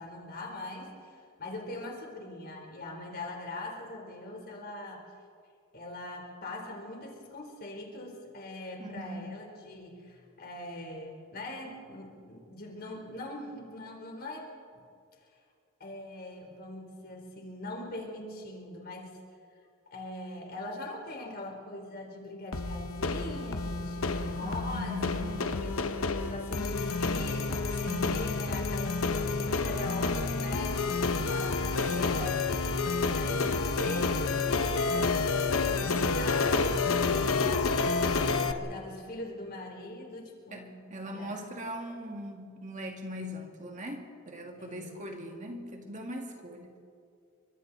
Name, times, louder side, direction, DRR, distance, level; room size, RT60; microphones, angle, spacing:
voice 1, 0.0-5.0 5.7-14.8 15.8-19.2 19.9-25.9 26.2-35.3 35.6-37.8 38.3-41.5 44.6-45.1, left 2 dB, 45° left, 1 dB, 4.0 m, -42 dB
voice 2, 8.8-9.3 24.4-25.7 27.8-28.2 40.5-40.6 40.9-46.7, left 1 dB, 35° right, 2 dB, 2.3 m, -40 dB
sound 1, 22.5-38.5, left 4 dB, 75° left, 1.1 m, -29 dB
29.5 x 24.5 x 4.2 m, 2.3 s
head